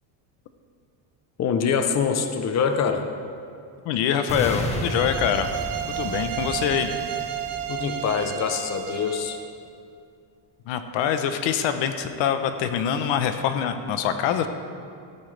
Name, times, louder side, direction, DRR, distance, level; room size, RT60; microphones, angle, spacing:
voice 1, 1.4-3.1 7.7-9.4, left 6 dB, 35° left, 7 dB, 0.8 m, -24 dB
voice 2, 3.8-5.5 5.9-6.9 10.7-14.5, left 8 dB, 75° left, 8 dB, 0.9 m, -24 dB
sound 1, 4.3-8.3, left 1 dB, 15° left, 1.2 m, -33 dB
sound 2, 4.7-9.5, right 12 dB, 65° right, 1.0 m, -32 dB
14.5 x 14.0 x 3.4 m, 2.3 s
cardioid pair, 145°, 46 cm